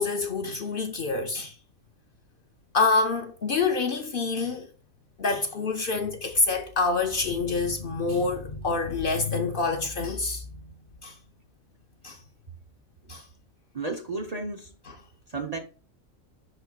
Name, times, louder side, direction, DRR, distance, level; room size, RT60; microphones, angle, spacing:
voice 1, 0.0-1.5 2.7-4.7 5.2-10.7 11.0-11.2 12.0-12.2 13.1-13.2 14.9-15.0, left 4 dB, 50° left, 0.7 m, -27 dB
voice 2, 13.7-14.7 15.3-15.6, right 3 dB, 40° right, 0.6 m, -32 dB
11.0 x 4.2 x 2.2 m
omnidirectional pair, 1.4 m